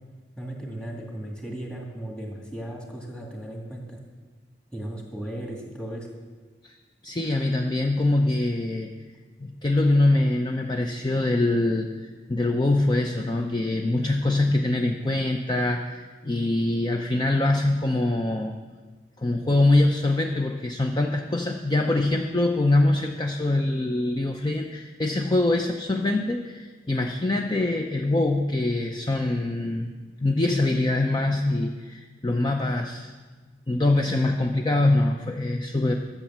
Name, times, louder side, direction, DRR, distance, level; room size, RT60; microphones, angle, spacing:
voice 1, 0.4-4.0 4.7-6.1, right 1 dB, 5° left, -1 dB, 1.9 m, -36 dB
voice 2, 7.0-8.9 9.4-18.5 19.2-29.9 30.2-33.1 33.7-35.9, left 2 dB, 25° left, 3 dB, 0.5 m, -24 dB
12.0 x 7.2 x 7.3 m, 1.4 s
head